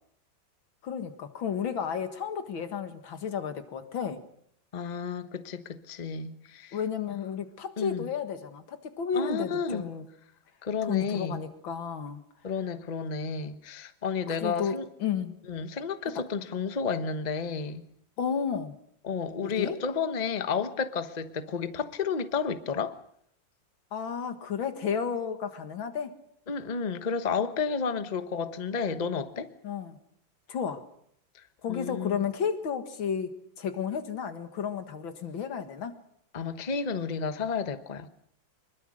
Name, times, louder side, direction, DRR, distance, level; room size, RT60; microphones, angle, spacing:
voice 1, 0.8-4.2 6.7-10.1 10.9-12.2 14.3-15.4 18.2-18.8 19.4-19.8 23.9-26.2 29.6-30.0 30.5-30.8 31.6-36.0, left 7 dB, 85° left, 2.5 m, -32 dB
voice 2, 4.7-6.8 7.8-8.1 9.1-9.8 10.6-11.4 12.4-14.8 15.5-17.9 19.0-23.0 26.5-29.5 31.7-32.2 36.3-38.1, left 5 dB, 25° left, 1.0 m, -31 dB
24.5 x 21.5 x 6.4 m
omnidirectional pair, 2.1 m